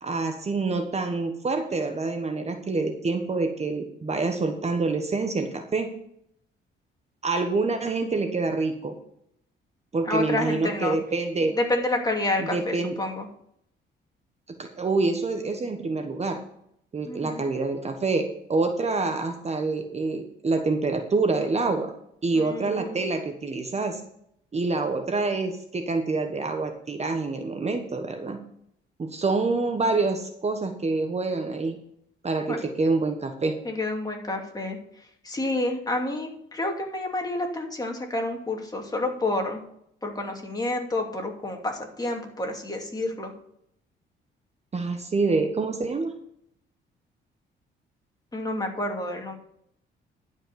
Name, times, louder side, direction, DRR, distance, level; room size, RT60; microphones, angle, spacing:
voice 1, 0.0-5.9 7.2-9.0 9.9-11.6 12.5-12.9 14.6-16.4 16.9-21.9 22.2-24.0 24.5-28.4 29.0-31.8 32.2-33.6 44.7-46.1, right 3 dB, 35° right, 5 dB, 1.3 m, -26 dB
voice 2, 10.1-11.0 11.5-13.3 17.1-17.4 22.3-23.0 32.5-32.6 33.6-34.8 35.2-39.6 40.0-43.3 48.3-49.3, left 2 dB, 20° left, 1 dB, 2.6 m, -29 dB
11.5 x 5.4 x 7.0 m, 0.72 s
cardioid pair, 90°, 20 cm